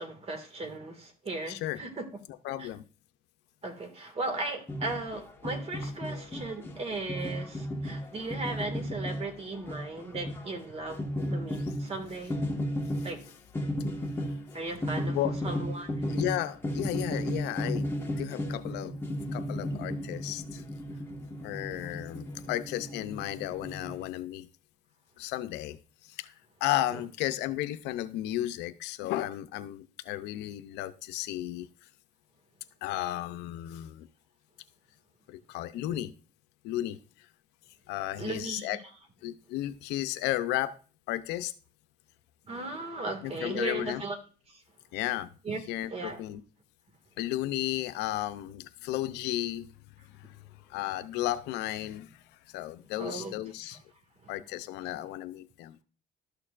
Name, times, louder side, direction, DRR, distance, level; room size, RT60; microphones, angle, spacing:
voice 1, 0.0-2.0 2.6-2.7 3.6-11.0 11.3-12.4 13.0-13.2 14.5-15.2 15.4-16.2 26.9-27.0 38.2-38.7 42.5-44.2 44.5-44.6 45.4-45.6 45.9-46.2 53.0-53.3 53.7-53.8, right 3 dB, 35° right, 1.9 m, -37 dB
voice 2, 1.5-1.8 2.4-2.8 14.2-14.3 15.0-15.4 16.1-19.0 19.3-20.6 21.4-24.5 25.2-25.8 26.0-26.3 26.6-31.7 32.8-34.1 35.3-36.1 36.6-37.0 37.9-38.8 39.2-40.8 41.1-41.5 43.2-44.0 44.9-45.3 45.7-46.4 47.2-49.7 50.1-50.4 50.7-52.2 52.5-53.8 54.3-55.8, left 14 dB, 90° left, 0.6 m, -34 dB
sound 1, 4.7-24.1, equal, 15° left, 1.4 m, -35 dB
12.0 x 6.6 x 2.5 m
cardioid pair, 110°, 17 cm